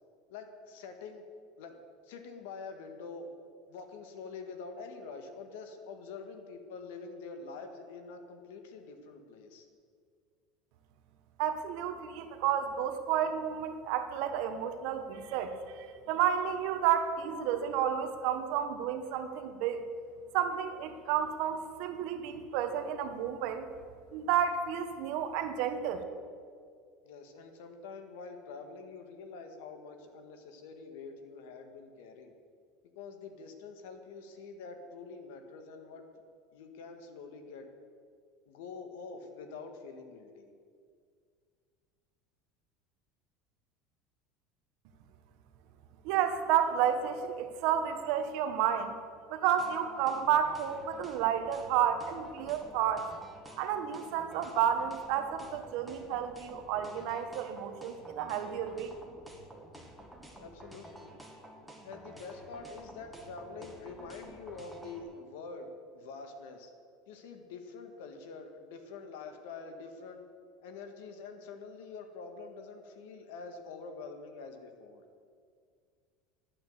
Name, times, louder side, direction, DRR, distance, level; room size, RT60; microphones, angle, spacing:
voice 1, 0.3-1.2 1.6-1.8 2.0-3.3 3.7-9.7 27.0-32.3 32.9-36.0 36.5-37.7 38.4-40.5 60.4-61.1 61.8-66.7 67.1-70.2 70.6-75.0, left 4 dB, 85° left, 6 dB, 1.7 m, -46 dB
voice 2, 11.4-19.9 20.3-23.7 24.1-26.0 46.0-48.9 49.3-53.1 53.6-58.9, right 9 dB, 65° right, 8 dB, 1.2 m, -31 dB
sound 1, 49.6-65.0, right 1 dB, ahead, 1.8 m, -51 dB
12.0 x 8.7 x 8.0 m, 2.1 s
supercardioid pair, 140°, 0 cm